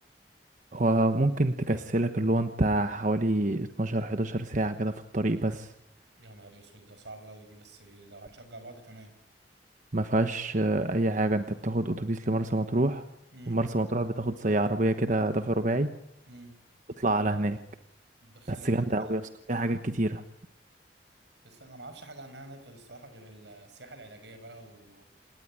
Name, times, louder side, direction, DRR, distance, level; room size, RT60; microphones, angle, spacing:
voice 1, 0.7-5.7 9.9-13.0 13.5-15.9 17.0-17.6 18.5-19.2 19.5-20.2, right 2 dB, 45° right, 9 dB, 1.1 m, -27 dB
voice 2, 6.2-9.1 13.3-13.6 16.3-16.5 18.2-19.3 21.4-25.1, right 2 dB, 80° right, 9 dB, 5.7 m, -48 dB
27.5 x 19.0 x 9.9 m, 0.82 s
head